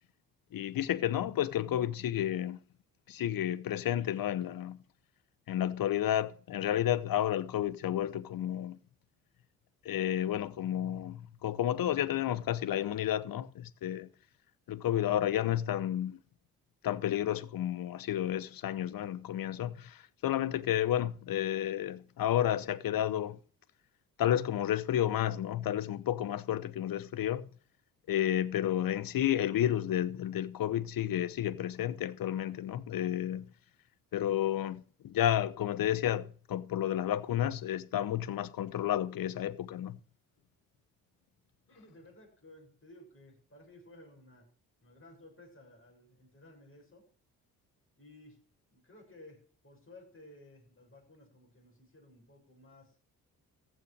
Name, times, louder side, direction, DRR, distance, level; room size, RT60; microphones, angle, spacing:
voice 1, 0.5-2.6 3.1-4.8 5.5-8.8 9.8-14.1 14.7-16.2 16.8-23.4 24.2-27.4 28.1-33.5 34.1-40.0, left 11 dB, 50° left, 0.9 m, -31 dB
voice 2, 41.7-44.5 44.8-47.0 48.0-48.4 48.7-52.9, left 1 dB, 30° left, 6.8 m, -56 dB
14.5 x 6.2 x 6.4 m
hypercardioid pair, 45°, 44 cm